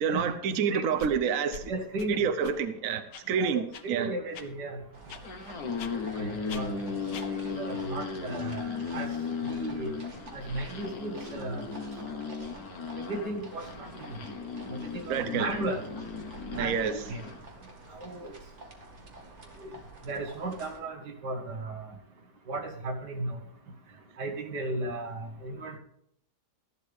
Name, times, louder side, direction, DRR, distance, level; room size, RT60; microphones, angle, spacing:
voice 1, 0.0-1.7 2.1-4.1 15.1-15.5 16.6-17.0, right 7 dB, 60° right, 1.1 m, -28 dB
sound 1, 1.0-1.1 1.5-1.6 2.0-2.1 2.4-2.6 3.1-3.2 3.7-3.8 4.3-4.5 5.1-5.2 5.8-5.9 6.5-6.6 7.1-7.3, left 5 dB, 90° left, 1.6 m, -42 dB
voice 2, 1.7-2.3 3.3-4.8 5.9-6.7 7.5-9.1 9.4-9.9 10.3-11.6 13.0-13.9 14.7-15.8 16.6-17.2 17.9-18.3 19.6-19.7 20.0-22.0 22.5-23.4 24.2-25.8, right 2 dB, 80° right, 2.2 m, -35 dB
sound 2, 4.9-20.8, right 2 dB, 40° right, 2.2 m, -48 dB
sound 3, 5.2-17.4, left 5 dB, 60° left, 1.6 m, -36 dB
13.5 x 12.0 x 3.5 m
omnidirectional pair, 1.8 m